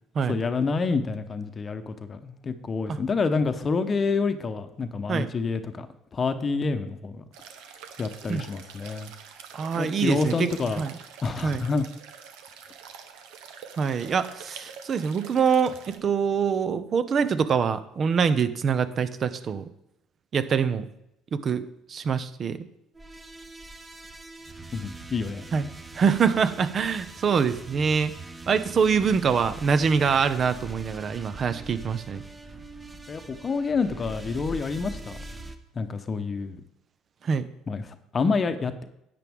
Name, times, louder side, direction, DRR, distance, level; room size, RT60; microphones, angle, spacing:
voice 1, 0.3-5.9 6.1-7.2 8.0-9.1 9.8-10.8 11.2-11.8 24.7-25.4 33.1-35.2 35.8-36.6 37.7-38.8, left 4 dB, 35° left, 9 dB, 0.9 m, -28 dB
sound 1, 7.3-16.0, right 7 dB, 80° right, 1.1 m, -45 dB
voice 2, 9.5-10.5 10.8-10.9 11.4-11.7 13.8-19.7 20.3-20.9 21.3-22.6 25.5-25.7 25.9-28.1 28.5-32.2 37.2-37.5, right 6 dB, 45° right, 13 dB, 0.8 m, -24 dB
sound 2, 22.9-35.6, right 2 dB, 20° right, 1.0 m, -42 dB
10.5 x 8.6 x 3.6 m, 0.82 s
supercardioid pair, 90°, 0 cm